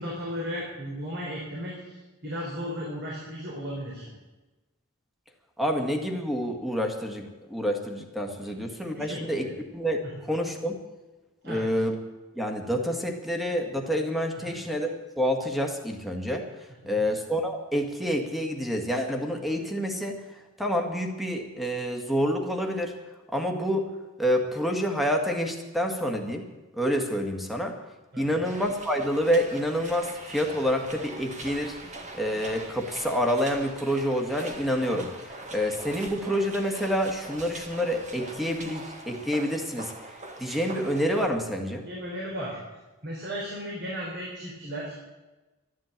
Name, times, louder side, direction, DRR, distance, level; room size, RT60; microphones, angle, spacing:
voice 1, 0.0-4.1 8.9-9.5 11.4-11.7 14.5-14.6 16.8-17.0 28.1-28.4 41.9-42.6 43.0-44.9, equal, 55° right, -3 dB, 4.1 m, -35 dB
voice 2, 5.6-9.5 9.7-10.0 10.3-10.8 11.4-12.0 12.4-16.5 16.8-20.2 20.6-22.9 23.3-23.9 24.2-26.5 26.7-27.7 28.2-31.8 32.1-39.9 40.4-41.9, equal, ahead, 3 dB, 1.9 m, -28 dB
sound 1, 28.4-41.3, right 2 dB, 35° right, 1.9 m, -42 dB
13.0 x 11.5 x 8.9 m, 1.1 s
head